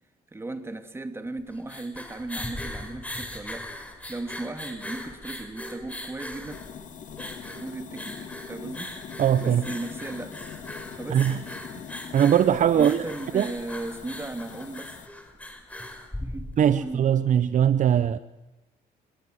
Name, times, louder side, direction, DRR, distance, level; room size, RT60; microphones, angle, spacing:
voice 1, 0.3-3.7 4.1-6.6 7.5-9.0 9.4-10.4 11.0-11.5 12.7-15.0 16.2-17.1, right 2 dB, 15° right, 7 dB, 2.7 m, -36 dB
sound 1, 1.4-16.8, left 1 dB, 10° left, 5.6 m, -39 dB
sound 2, 6.5-15.1, left 7 dB, 50° left, 2.5 m, -43 dB
voice 2, 9.2-9.6 11.1-11.4 12.1-13.0 13.3-13.5 16.6-18.2, right 9 dB, 50° right, 14 dB, 0.9 m, -20 dB
30.0 x 22.0 x 8.0 m, 0.99 s
cardioid pair, 110°, 17 cm